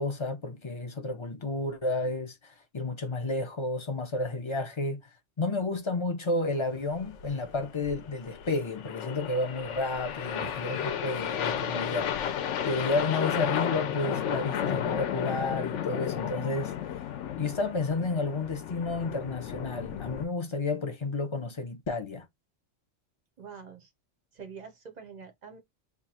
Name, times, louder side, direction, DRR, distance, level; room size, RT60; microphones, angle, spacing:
voice 1, 0.0-5.0 5.4-16.8 17.4-22.3, left 2 dB, 35° left, 0.5 m, -31 dB
sound 1, 6.9-20.3, left 9 dB, 70° left, 0.9 m, -33 dB
voice 2, 10.3-10.7 23.4-23.9 24.3-25.6, right 6 dB, 45° right, 0.6 m, -45 dB
3.0 x 2.4 x 4.1 m
omnidirectional pair, 1.3 m